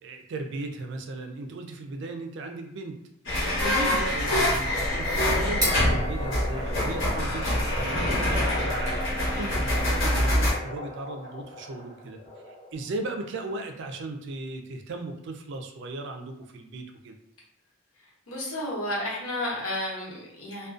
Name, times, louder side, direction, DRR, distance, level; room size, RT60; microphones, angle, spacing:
voice 1, 0.0-3.0 3.6-12.2 12.5-17.2, right 2 dB, 55° right, 4 dB, 0.3 m, -36 dB
sound 1, 3.3-10.5, left 1 dB, 60° left, 0.9 m, -25 dB
sound 2, 3.4-8.2, right 1 dB, 15° right, 0.6 m, -37 dB
sound 3, 4.7-13.0, left 2 dB, 30° left, 0.6 m, -37 dB
voice 2, 18.3-20.7, left 1 dB, 85° left, -5 dB, 1.0 m, -32 dB
2.4 x 2.2 x 2.4 m, 0.77 s
head